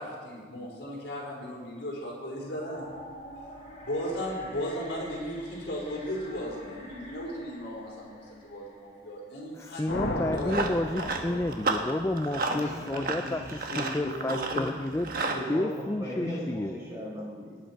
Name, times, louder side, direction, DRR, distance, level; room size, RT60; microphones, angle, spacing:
voice 1, 0.0-2.9 3.8-9.8 10.3-10.6, equal, 70° left, -4 dB, 4.6 m, -36 dB
sound 1, 2.6-9.7, equal, 35° left, 4.8 m, -48 dB
voice 2, 9.5-15.1 15.5-16.8, left 1 dB, 15° left, 7 dB, 0.4 m, -31 dB
sound 2, 9.9-12.1, left 1 dB, 85° left, 1.5 m, -34 dB
Run, 10.1-15.4, right 3 dB, 50° right, 1.2 m, -33 dB
voice 3, 11.0-11.4 12.4-14.7 15.1-17.6, equal, 15° right, -5 dB, 4.7 m, -37 dB
19.0 x 8.9 x 4.6 m, 1.5 s
head